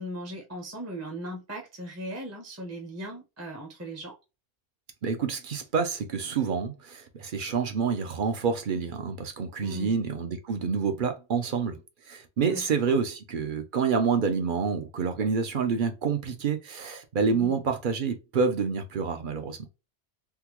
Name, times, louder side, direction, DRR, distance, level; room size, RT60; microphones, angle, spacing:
voice 1, 0.0-4.2 9.6-9.9 12.5-13.0 17.3-17.6, equal, 15° right, 0.6 m, -38 dB
voice 2, 5.0-11.8 12.1-19.7, right 5 dB, 55° right, 0.7 m, -28 dB
3.5 x 2.2 x 2.9 m
omnidirectional pair, 1.2 m